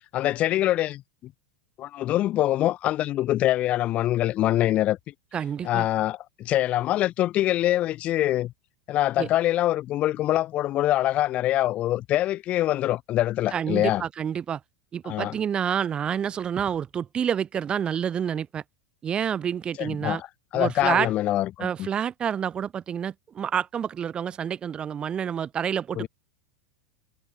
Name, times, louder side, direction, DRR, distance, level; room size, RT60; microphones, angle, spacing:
voice 1, 0.1-1.0 1.8-5.0 5.6-8.5 8.9-14.0 15.0-15.3 19.8-20.3 20.5-21.9 26.0-26.1, left 14 dB, 40° left, 2.4 m, -24 dB
voice 2, 5.3-5.9 9.2-9.3 13.5-14.6 14.9-18.6 19.0-20.2 20.5-21.1 21.6-26.1, right 8 dB, 25° right, 7.4 m, -28 dB
figure-of-eight pair, 85°, 4 cm